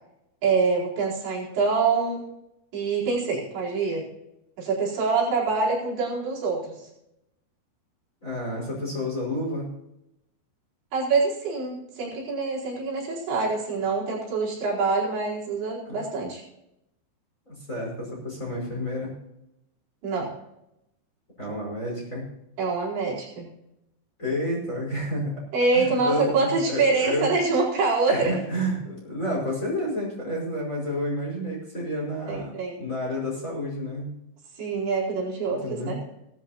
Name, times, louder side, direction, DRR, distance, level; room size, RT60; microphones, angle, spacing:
voice 1, 0.4-2.3 2.7-4.1 4.6-6.8 10.9-16.4 20.0-20.3 22.6-23.5 25.5-28.4 31.8-31.9 32.3-32.8 34.6-36.0, right 4 dB, 70° right, -5 dB, 6.8 m, -25 dB
voice 2, 8.2-9.7 15.9-16.0 17.5-19.1 21.4-22.3 24.2-25.4 25.7-27.3 28.1-34.1 35.5-35.9, left 1 dB, 15° left, -3 dB, 5.1 m, -30 dB
18.0 x 13.5 x 2.8 m, 0.85 s
omnidirectional pair, 5.4 m